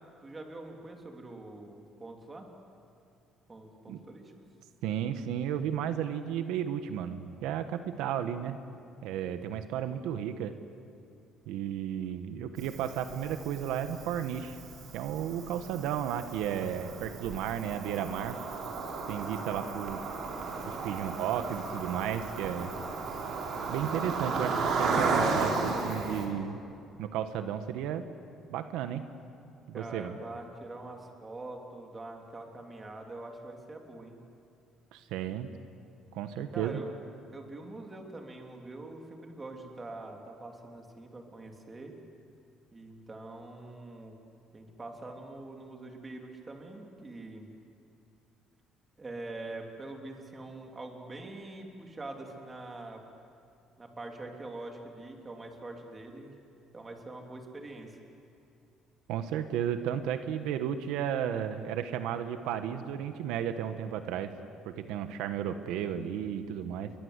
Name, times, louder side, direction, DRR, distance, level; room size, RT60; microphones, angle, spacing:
voice 1, 0.2-2.5 3.5-4.3 29.7-34.2 36.5-36.9 37.3-41.9 42.7-44.1 44.5-47.5 49.0-53.0 53.8-56.3 56.7-58.0, right 2 dB, 20° right, 2 dB, 3.2 m, -44 dB
voice 2, 4.8-8.6 9.0-10.5 11.5-14.6 14.9-18.4 19.1-20.0 20.6-22.7 23.7-26.6 27.0-28.1 28.5-29.0 29.7-30.2 34.9-35.5 36.1-36.8 59.1-64.3 64.6-66.9, right 9 dB, 90° right, 9 dB, 1.4 m, -33 dB
Cricket, 12.6-26.3, right 4 dB, 50° right, 4.2 m, -34 dB
29.5 x 23.5 x 8.3 m, 2.5 s
cardioid pair, 155°, 0 cm